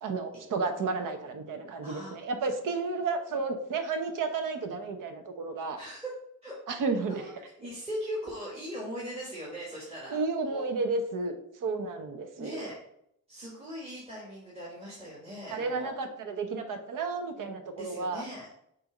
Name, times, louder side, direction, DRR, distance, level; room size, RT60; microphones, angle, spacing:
voice 1, 0.0-5.8 6.7-7.2 10.1-11.4 11.6-12.6 15.5-18.2, right 4 dB, 75° right, 7 dB, 1.0 m, -32 dB
voice 2, 1.8-2.2 5.7-6.1 6.4-6.5 7.1-7.3 7.6-10.2 10.5-10.7 12.4-12.8 13.3-15.9 17.7-18.5, equal, 20° right, -6 dB, 1.4 m, -39 dB
6.7 x 2.8 x 4.9 m, 0.75 s
wide cardioid pair, 150°, 32 cm